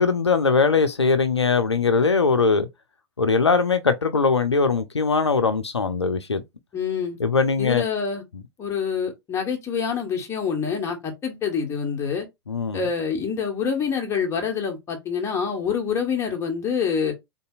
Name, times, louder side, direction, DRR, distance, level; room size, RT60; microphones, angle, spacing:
voice 1, 0.0-2.7 3.2-6.4 7.2-7.8 12.5-12.8, left 4 dB, 85° left, 0.4 m, -21 dB
voice 2, 6.7-7.2 7.6-8.2 8.6-12.3 12.7-17.1, left 6 dB, 20° left, 1.3 m, -26 dB
3.8 x 2.6 x 2.4 m
figure-of-eight pair, 95°, 14 cm